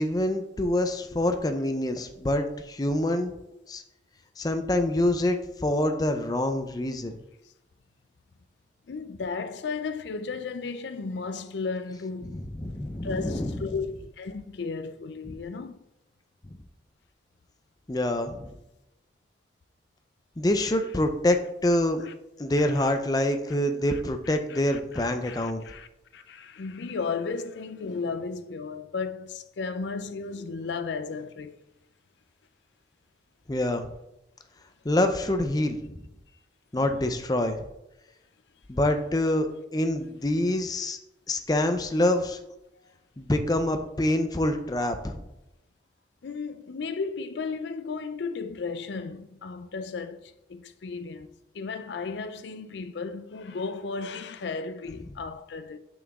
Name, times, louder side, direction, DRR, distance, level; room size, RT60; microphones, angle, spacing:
voice 1, 0.0-3.3 3.7-3.8 4.4-7.1 12.3-13.6 15.3-15.4 17.9-18.5 20.4-22.0 22.4-25.6 33.5-33.8 34.8-36.1 36.7-37.6 38.7-39.5 39.7-41.0 41.3-42.4 43.2-45.2, left 1 dB, 20° left, 0.5 m, -26 dB
voice 2, 8.9-12.4 13.0-13.9 14.2-15.8 22.0-22.1 22.6-22.9 23.9-24.0 24.3-25.9 26.1-31.5 36.8-37.0 46.2-51.3 51.5-55.8, left 4 dB, 80° left, 0.4 m, -34 dB
6.1 x 6.0 x 3.6 m
head